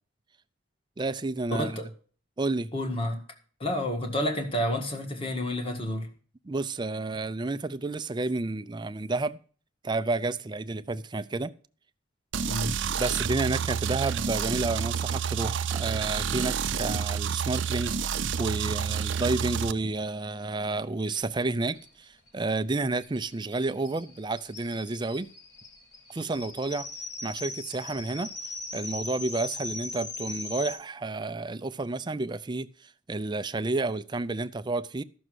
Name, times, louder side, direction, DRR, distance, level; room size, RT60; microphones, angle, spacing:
voice 1, 1.0-1.8 2.4-2.7 6.4-9.4 9.8-11.5 13.0-25.3 26.1-26.9 27.2-28.3 28.7-35.0, right 3 dB, 25° right, 0.5 m, -30 dB
voice 2, 1.5-1.9 2.7-3.2 3.6-6.1 12.5-12.7, left 1 dB, 30° left, 1.8 m, -29 dB
sound 1, 12.3-19.7, right 7 dB, 70° right, 0.6 m, -29 dB
sound 2, 21.0-21.1 21.4-21.5 21.7-30.7, left 2 dB, 60° left, 3.5 m, -40 dB
13.5 x 6.3 x 6.3 m
head